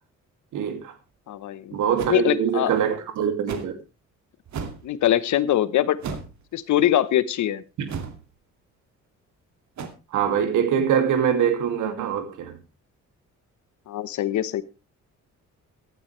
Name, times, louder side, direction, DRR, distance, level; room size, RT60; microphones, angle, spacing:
voice 1, 0.5-0.9 1.7-3.7 7.8-7.9 10.1-12.6, right 8 dB, 80° right, 2.6 m, -23 dB
voice 2, 1.3-1.7 2.1-2.7 4.8-6.0 6.5-7.6 13.9-14.6, left 12 dB, 75° left, 1.1 m, -22 dB
sound 1, 2.0-2.2 3.5-3.8 4.5-4.9 6.0-6.4 7.9-8.2 9.8-9.9, right 6 dB, 65° right, 2.4 m, -33 dB
15.0 x 12.0 x 3.3 m
cardioid pair, 90°, 30 cm